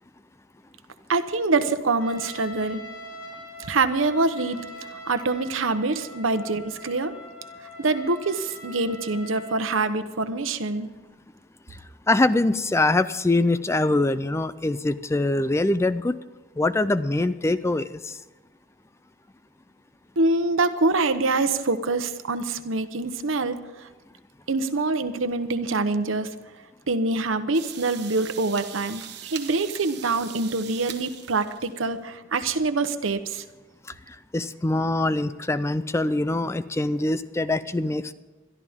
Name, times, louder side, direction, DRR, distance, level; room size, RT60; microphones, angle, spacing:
voice 1, 1.1-2.8 3.7-4.6 5.1-7.1 7.8-10.9 20.2-23.9 24.5-26.3 26.9-33.4, right 3 dB, 85° right, 10 dB, 1.0 m, -25 dB
Trumpet, 2.0-9.7, left 1 dB, 80° left, 3.2 m, -42 dB
voice 2, 12.1-16.2 16.6-18.2 34.1-38.1, left 2 dB, 15° left, 14 dB, 0.4 m, -23 dB
sound 1, 27.5-31.9, right 10 dB, 55° right, 1.2 m, -41 dB
22.0 x 13.0 x 3.6 m, 1.2 s
head